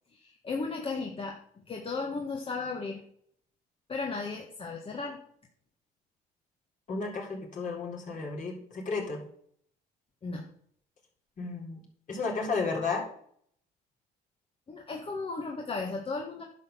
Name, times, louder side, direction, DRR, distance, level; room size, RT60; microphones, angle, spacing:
voice 1, 0.1-1.4 1.7-3.0 3.9-5.2 10.2-10.4 14.7-16.4, left 4 dB, 35° left, 1 dB, 1.6 m, -35 dB
voice 2, 6.9-9.2 11.4-11.8 12.1-13.1, left 4 dB, 50° left, -1 dB, 4.1 m, -33 dB
10.5 x 5.9 x 7.0 m, 0.64 s
cardioid pair, 110°, 17 cm